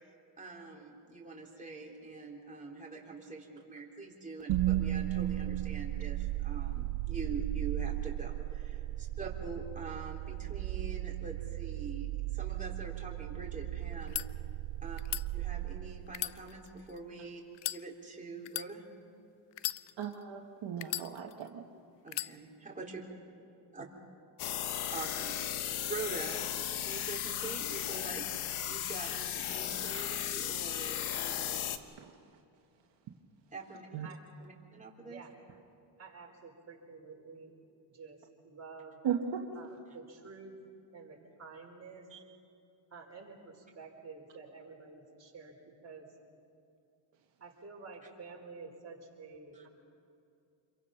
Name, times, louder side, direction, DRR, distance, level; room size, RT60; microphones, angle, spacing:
voice 1, 0.4-14.2 14.8-15.0 15.3-17.4 17.7-18.8 22.0-22.9 23.7-23.8 24.9-26.4 26.9-28.4 28.7-31.7 33.5-35.2 49.5-49.7, right 3 dB, 15° right, -2 dB, 3.7 m, -44 dB
sound 1, 4.5-16.6, right 14 dB, 80° right, 0.7 m, -36 dB
sound 2, 13.9-14.3 15.0-15.2 16.1-17.0 17.5-17.8 18.4-18.7 19.5-20.2 20.8-21.5 22.1-22.3, left 14 dB, 60° left, 0.6 m, -37 dB
voice 2, 20.0-21.6 32.0-32.1 33.9-34.1 39.0-39.4 42.1-42.2, right 8 dB, 60° right, 2 dB, 1.5 m, -36 dB
sound 3, 24.4-31.8, left 11 dB, 80° left, 1.2 m, -36 dB
voice 3, 36.0-37.5 37.9-39.0 39.5-40.5 40.9-42.1 42.9-46.1 47.4-49.7, right 4 dB, 30° right, -1 dB, 5.1 m, -50 dB
28.0 x 23.0 x 5.8 m, 2.6 s
cardioid pair, 105°, 48 cm